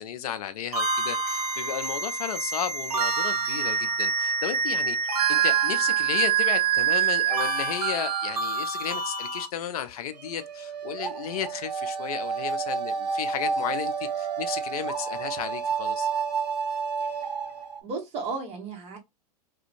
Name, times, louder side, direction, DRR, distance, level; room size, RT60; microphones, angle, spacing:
voice 1, 0.0-16.1, left 9 dB, 65° left, 0.4 m, -34 dB
sound 1, 0.7-9.5, right 7 dB, 65° right, 1.0 m, -26 dB
sound 2, 10.2-17.8, right 5 dB, 85° right, 0.4 m, -30 dB
voice 2, 17.8-19.0, right 4 dB, 30° right, 1.1 m, -34 dB
2.5 x 2.1 x 2.5 m
figure-of-eight pair, 95°, 21 cm